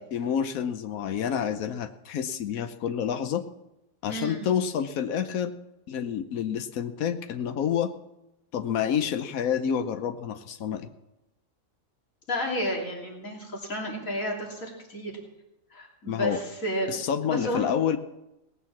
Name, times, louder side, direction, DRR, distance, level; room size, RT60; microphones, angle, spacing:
voice 1, 0.0-3.4 4.0-5.5 5.9-7.9 8.5-10.9 16.1-16.4 16.9-18.0, left 8 dB, 90° left, 8 dB, 1.2 m, -28 dB
voice 2, 4.1-4.4 12.3-15.1 15.7-16.9 17.3-17.7, equal, 75° left, -1 dB, 3.5 m, -31 dB
18.5 x 8.5 x 7.3 m, 0.91 s
omnidirectional pair, 1.4 m